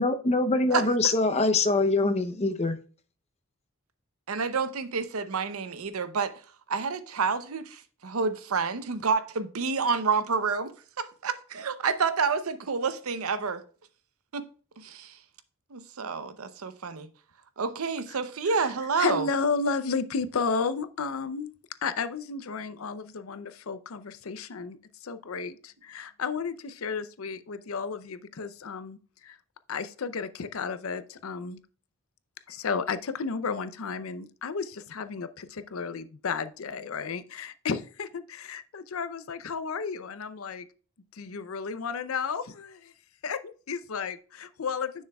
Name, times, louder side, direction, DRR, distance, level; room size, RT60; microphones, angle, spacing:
voice 1, 0.0-2.8, left 2 dB, 30° left, 0.7 m, -24 dB
voice 2, 4.3-6.3 6.7-10.7 11.0-13.6 14.3-14.5 14.8-15.2 15.7-17.1 17.6-19.3, right 5 dB, 90° right, 0.7 m, -29 dB
voice 3, 19.0-21.5 21.8-29.4 29.7-31.6 32.5-40.7 41.1-42.9 43.2-45.0, left 5 dB, 75° left, 0.6 m, -33 dB
10.0 x 6.4 x 2.3 m
head